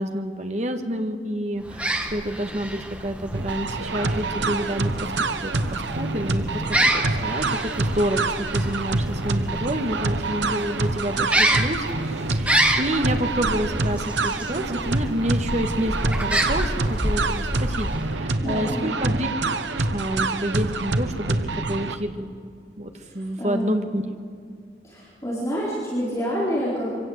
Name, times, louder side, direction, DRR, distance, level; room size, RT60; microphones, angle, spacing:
voice 1, 0.0-5.1 5.4-19.3 19.9-22.3 22.8-24.0, equal, 40° right, 6 dB, 1.6 m, -29 dB
sound 1, 1.6-18.4, right 1 dB, 5° right, 1.3 m, -28 dB
sound 2, 3.3-22.0, right 3 dB, 90° right, 1.1 m, -26 dB
voice 2, 18.4-19.1 23.4-23.8 24.8-26.9, equal, 15° left, -7 dB, 4.2 m, -28 dB
24.0 x 17.0 x 8.0 m, 2.3 s
head